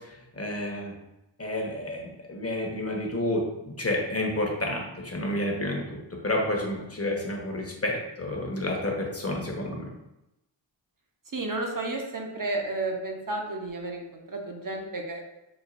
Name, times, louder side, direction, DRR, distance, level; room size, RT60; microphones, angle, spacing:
voice 1, 0.3-0.9 1.4-9.9, left 1 dB, 30° left, 0 dB, 1.1 m, -30 dB
voice 2, 11.3-15.2, right 2 dB, 40° right, 1 dB, 0.9 m, -32 dB
6.1 x 2.5 x 2.6 m, 0.92 s
cardioid pair, 40°, 48 cm